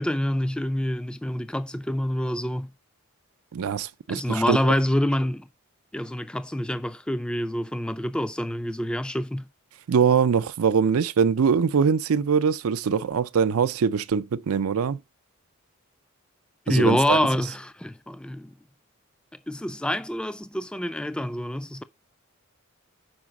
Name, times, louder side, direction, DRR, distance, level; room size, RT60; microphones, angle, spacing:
voice 1, 0.0-2.7 4.1-5.5 5.9-9.5 16.7-18.5 19.5-21.8, left 1 dB, 5° left, 0.3 m, -26 dB
voice 2, 3.5-4.6 9.9-15.0 16.7-17.2, right 6 dB, 80° right, 0.4 m, -22 dB
6.1 x 4.8 x 5.8 m
head